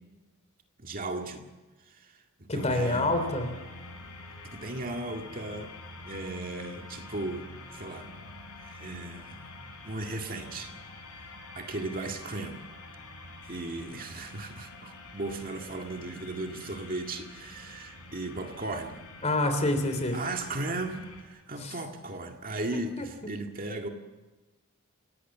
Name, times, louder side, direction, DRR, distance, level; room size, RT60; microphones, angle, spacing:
voice 1, 0.8-1.4 1.9-3.0 4.4-5.7 6.0-8.1 8.6-9.4 9.8-10.7 11.0-12.7 13.4-19.0 20.1-23.9, right 2 dB, 40° right, 4 dB, 2.0 m, -36 dB
voice 2, 2.5-3.5 19.2-20.2 21.5-21.8 23.0-23.1, left 2 dB, 30° left, 7 dB, 3.4 m, -27 dB
sound 1, 2.6-21.2, left 2 dB, 80° left, 5.4 m, -46 dB
29.0 x 17.0 x 7.4 m, 1.2 s
head